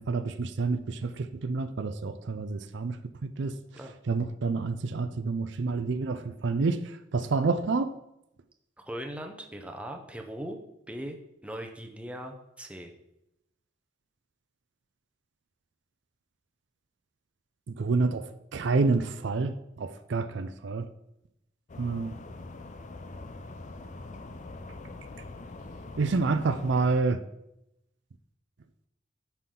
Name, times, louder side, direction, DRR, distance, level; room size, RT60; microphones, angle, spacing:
voice 1, 0.0-3.0 3.4-3.5 4.1-6.8 7.1-7.9 17.8-18.3 18.5-20.8 21.8-22.1 26.0-27.2, right 4 dB, 65° right, 10 dB, 0.5 m, -28 dB
voice 2, 8.8-10.6 10.9-11.2 11.4-12.9, equal, 5° right, 3 dB, 0.8 m, -39 dB
sound 1, 21.7-27.0, left 2 dB, 40° left, 0.6 m, -43 dB
9.8 x 5.9 x 3.8 m, 0.85 s
head